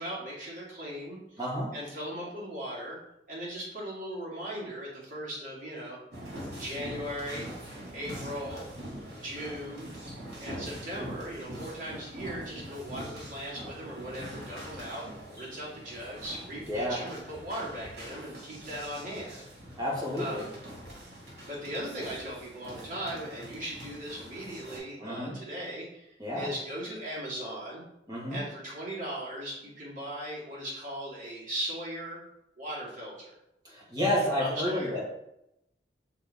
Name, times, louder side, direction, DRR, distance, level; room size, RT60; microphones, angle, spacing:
voice 1, 0.0-1.5 1.7-3.0 3.3-6.0 6.6-7.5 7.9-8.7 9.2-9.9 10.4-15.1 15.4-19.4 20.2-20.5 21.5-26.1 26.3-27.8 28.3-32.2 32.6-33.4 34.1-35.0, equal, 50° right, -6 dB, 2.3 m, -38 dB
voice 2, 1.4-1.7 16.7-17.0 19.8-20.5 25.0-25.4 26.2-26.5 28.1-28.4 33.6-35.0, left 1 dB, 25° right, -5 dB, 1.9 m, -30 dB
sound 1, 6.1-24.8, equal, 65° right, 2.4 m, -44 dB
6.6 x 4.0 x 3.6 m, 0.84 s
head